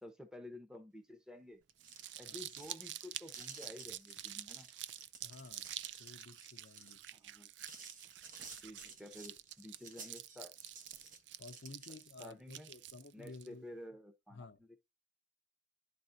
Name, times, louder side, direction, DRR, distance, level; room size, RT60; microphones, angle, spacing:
voice 1, 0.0-1.6 2.2-4.7 7.1-7.5 8.6-10.5 12.2-12.7 13.1-14.5, left 1 dB, 5° right, 1.0 m, -51 dB
sound 1, 1.6-12.2, right 5 dB, 50° right, 1.3 m, -54 dB
Crumpling crinkling, 1.7-13.5, right 13 dB, 85° right, 0.4 m, -48 dB
voice 2, 5.2-7.1 11.4-13.7 14.3-14.7, left 3 dB, 90° left, 0.7 m, -53 dB
11.5 x 4.2 x 2.6 m
head